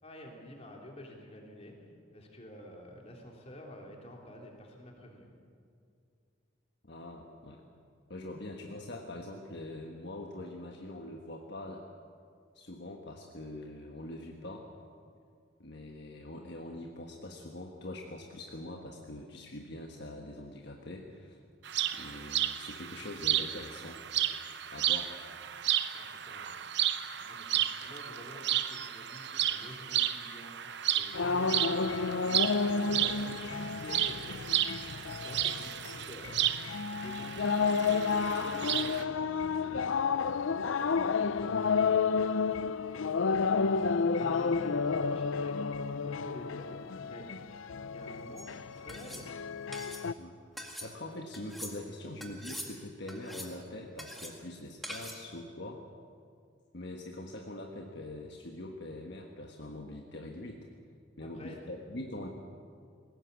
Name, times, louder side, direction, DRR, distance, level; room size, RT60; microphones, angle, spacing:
voice 1, 0.0-5.3 25.9-26.5 27.3-32.2 32.5-39.2 39.5-42.7 44.1-46.8 47.0-47.3 47.9-49.3 61.2-61.6, equal, 30° left, 0 dB, 3.5 m, -50 dB
voice 2, 6.8-7.6 8.1-11.8 12.5-14.7 15.6-21.4 21.9-24.0 24.7-25.1 50.2-50.4 50.8-55.8 56.7-60.7 61.2-62.3, left 1 dB, 55° left, 1 dB, 1.4 m, -43 dB
sound 1, 21.7-39.0, right 11 dB, 55° right, 0.8 m, -33 dB
sound 2, 31.1-50.1, left 5 dB, 75° left, 0.5 m, -31 dB
sound 3, 48.4-48.5 48.9-49.3 49.7-50.0 50.6-50.9 51.3-51.8 52.2-52.7 53.1-53.6 54.0-54.3 54.8-55.2, equal, ahead, 1.9 m, -43 dB
20.5 x 18.0 x 8.4 m, 2.3 s
head